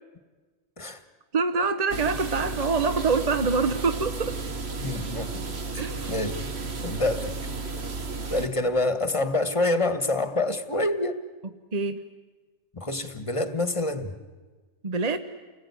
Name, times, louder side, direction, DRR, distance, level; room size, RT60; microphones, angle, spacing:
voice 1, 1.3-4.4 5.7-6.1 11.7-12.0 14.8-15.2, right 4 dB, 35° right, 10 dB, 1.0 m, -25 dB
sound 1, 1.9-8.5, right 3 dB, 60° right, 1.8 m, -33 dB
voice 2, 4.8-6.5 6.8-7.3 8.3-11.2 12.7-14.2, left 2 dB, 25° left, 11 dB, 1.6 m, -27 dB
30.0 x 20.0 x 9.8 m, 1.3 s
omnidirectional pair, 1.2 m